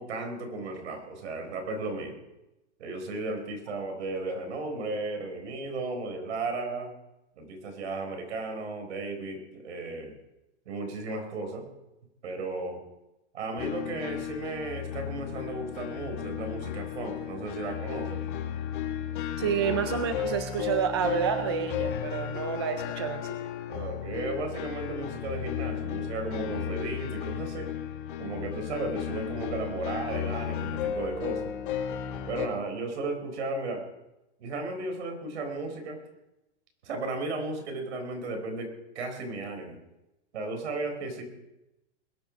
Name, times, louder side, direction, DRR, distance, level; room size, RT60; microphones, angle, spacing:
voice 1, 0.0-2.2 2.8-6.9 7.4-10.1 10.7-11.7 12.2-12.8 13.3-18.2 19.4-19.6 23.7-27.7 28.2-31.5 32.3-33.8 34.4-36.0 36.8-39.8 40.3-41.2, right 2 dB, 70° right, 5 dB, 4.3 m, -35 dB
sound 1, 13.6-32.5, left 9 dB, 45° left, 1.4 m, -34 dB
voice 2, 19.4-23.4, right 7 dB, 25° right, 9 dB, 0.4 m, -29 dB
21.0 x 9.5 x 5.1 m, 0.95 s
supercardioid pair, 180°, 35 cm